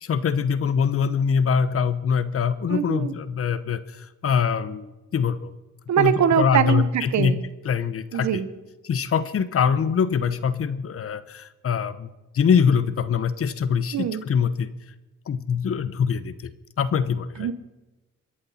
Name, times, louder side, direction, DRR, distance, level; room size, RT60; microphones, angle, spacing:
voice 1, 0.0-5.5 6.0-8.4 8.8-14.7 15.3-16.5 16.8-17.5, left 6 dB, 50° left, 15 dB, 1.0 m, -24 dB
voice 2, 2.7-3.1 5.9-7.4 8.1-8.5 13.9-14.2 17.4-17.5, right 9 dB, 65° right, 12 dB, 1.4 m, -22 dB
25.5 x 11.0 x 4.3 m, 1.1 s
cardioid pair, 90°, 30 cm